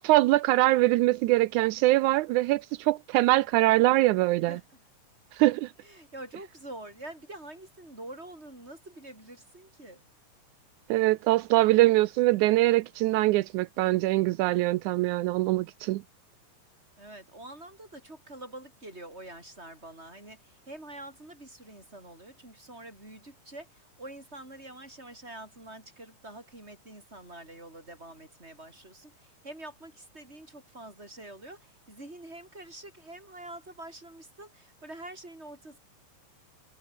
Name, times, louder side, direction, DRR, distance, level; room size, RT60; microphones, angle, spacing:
voice 1, 0.0-4.6 5.3-5.7 10.9-16.0, right 18 dB, 80° right, 1.8 m, -23 dB
voice 2, 4.4-4.8 5.8-10.0 17.0-35.8, right 1 dB, 15° right, 7.9 m, -46 dB
omnidirectional pair, 4.0 m